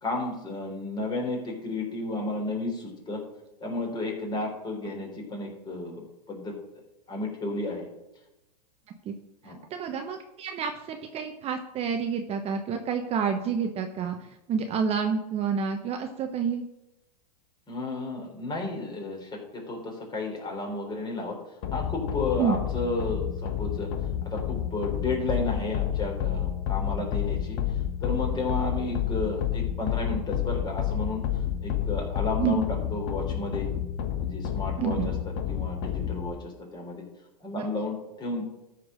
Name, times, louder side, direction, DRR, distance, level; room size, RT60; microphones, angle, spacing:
voice 1, 0.0-3.2 3.6-6.5 7.1-7.9 9.4-9.6 17.7-21.4 21.7-23.9 24.2-27.6 28.0-31.2 31.6-32.6 32.9-33.7 34.2-37.0 37.4-38.4, left 2 dB, 20° left, 0 dB, 3.6 m, -32 dB
voice 2, 9.4-16.6 22.4-22.6 32.4-32.6 34.8-35.1 37.6-37.7, right 6 dB, 30° right, 5 dB, 1.0 m, -29 dB
sound 1, 21.6-36.3, left 10 dB, 50° left, 1.4 m, -30 dB
13.5 x 4.7 x 6.2 m, 0.94 s
hypercardioid pair, 110°, 21 cm